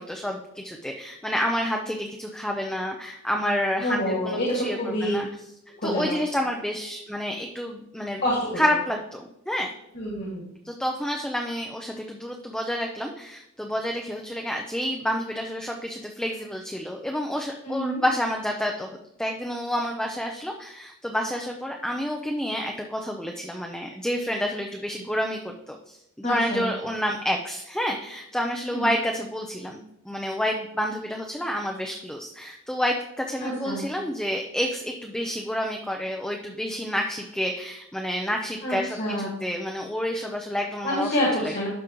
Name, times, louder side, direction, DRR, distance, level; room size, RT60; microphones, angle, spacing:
voice 1, 0.0-5.3 5.8-8.2 8.6-9.7 10.6-18.9 19.2-41.1 41.4-41.5, equal, 5° left, 1 dB, 0.5 m, -29 dB
voice 2, 3.8-5.2 5.8-6.2 8.2-8.6 9.9-10.5 17.6-18.0 26.2-26.7 28.7-28.9 33.4-33.8 38.6-39.3 40.8-41.7, equal, 55° left, -5 dB, 2.0 m, -27 dB
12.0 x 5.0 x 3.0 m, 0.82 s
head